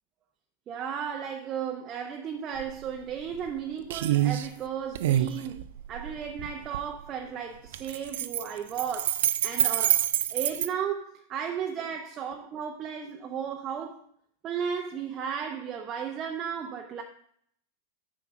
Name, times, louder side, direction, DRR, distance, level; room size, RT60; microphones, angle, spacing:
voice 1, 0.7-5.6 5.9-14.0 14.4-17.0, right 7 dB, 30° right, 0.8 m, -34 dB
sound 1, 2.6-2.7 3.1-3.6 3.9-4.5 5.0-6.9 7.7-10.7, right 13 dB, 55° right, 0.5 m, -27 dB
8.9 x 5.9 x 5.0 m
figure-of-eight pair, 90°, 0 cm